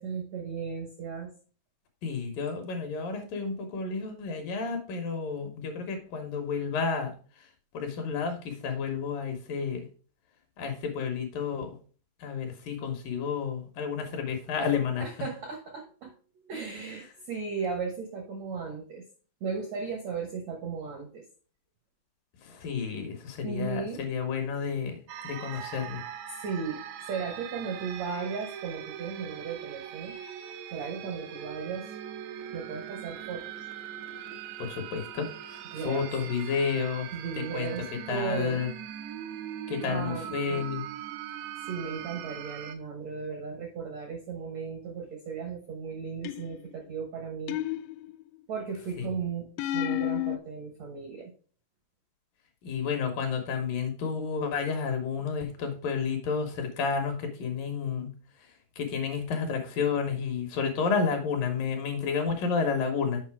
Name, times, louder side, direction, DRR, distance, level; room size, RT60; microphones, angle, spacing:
voice 1, 0.0-1.3 15.0-16.1 16.4-19.0 19.4-21.2 23.4-24.0 26.4-26.8 27.1-30.2 30.7-31.9 32.5-33.7 35.7-36.3 37.1-38.6 39.9-40.7 41.6-47.6 48.5-51.3, right 5 dB, 70° right, 2 dB, 1.6 m, -36 dB
voice 2, 2.0-7.1 7.7-9.9 10.6-11.8 12.2-15.0 22.5-25.0 25.2-26.0 34.6-35.3 35.8-37.1 37.5-37.7 38.1-38.7 39.7-40.8 49.0-49.1 52.6-58.1 58.8-63.2, left 5 dB, 65° left, 5 dB, 2.6 m, -31 dB
sound 1, 25.1-42.8, right 10 dB, 90° right, 2.8 m, -41 dB
sound 2, 46.3-46.7 47.5-48.4 49.6-50.4, left 13 dB, 85° left, 2.6 m, -31 dB
7.5 x 5.3 x 4.7 m, 0.39 s
omnidirectional pair, 4.7 m